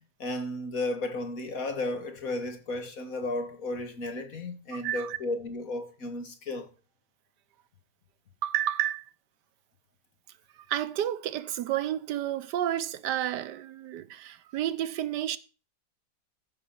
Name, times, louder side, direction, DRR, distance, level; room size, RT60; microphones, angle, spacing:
voice 1, 0.2-6.7, left 2 dB, 55° left, 2.0 m, -34 dB
voice 2, 4.7-5.2 8.4-9.0 10.7-15.4, right 11 dB, 80° right, 1.3 m, -31 dB
14.0 x 6.2 x 5.8 m
omnidirectional pair, 1.8 m